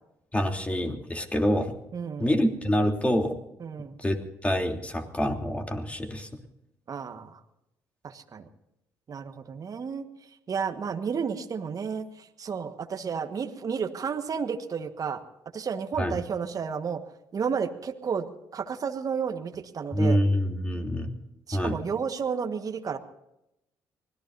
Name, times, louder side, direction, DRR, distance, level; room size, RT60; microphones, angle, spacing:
voice 1, 0.3-1.8 2.2-3.4 4.0-6.3 16.0-16.2 19.9-21.1 21.5-21.8, equal, 15° left, 3 dB, 3.1 m, -26 dB
voice 2, 1.9-2.3 3.6-4.0 6.9-7.4 8.0-8.4 9.1-10.1 10.5-15.2 15.5-17.0 17.3-18.3 18.5-20.2 21.5-23.0, right 6 dB, 45° right, 7 dB, 1.5 m, -32 dB
25.0 x 18.5 x 2.7 m, 0.85 s
supercardioid pair, 60°, 8 cm